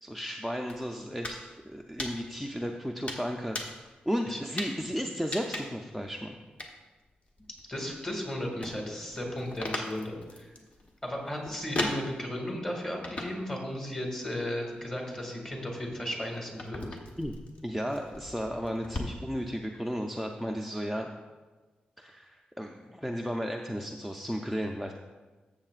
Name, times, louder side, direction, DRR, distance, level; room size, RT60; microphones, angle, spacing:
voice 1, 0.0-6.4 17.2-17.3 17.6-21.1 22.0-24.9, equal, ahead, 2 dB, 0.4 m, -34 dB
sound 1, 0.7-1.4 1.7-2.5 3.1-3.9 4.6-4.8 5.3-5.9 6.6-6.7 7.2-8.2 8.5-12.5 13.0-13.6 13.9-14.5 15.1-19.0, left 1 dB, 45° left, 1.1 m, -38 dB
voice 2, 7.7-10.5 11.0-17.0, left 1 dB, 20° left, 0 dB, 1.9 m, -35 dB
13.0 x 7.3 x 2.4 m, 1.3 s
wide cardioid pair, 135°, 3 cm